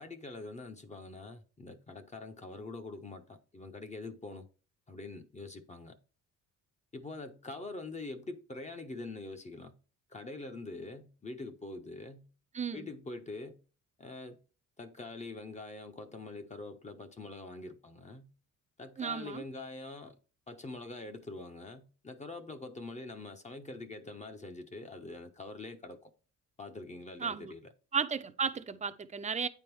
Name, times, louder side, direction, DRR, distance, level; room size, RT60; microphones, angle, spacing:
voice 1, 0.0-4.5 4.9-6.0 6.9-9.7 10.1-12.3 12.7-13.6 14.0-14.4 14.8-18.3 18.8-20.1 20.5-26.1 26.6-27.7, left 2 dB, 20° left, 0.6 m, -44 dB
voice 2, 12.5-12.9 19.0-19.4 27.2-27.5 27.9-29.5, right 6 dB, 20° right, 0.5 m, -34 dB
8.8 x 3.5 x 4.6 m
cardioid pair, 120°, 33 cm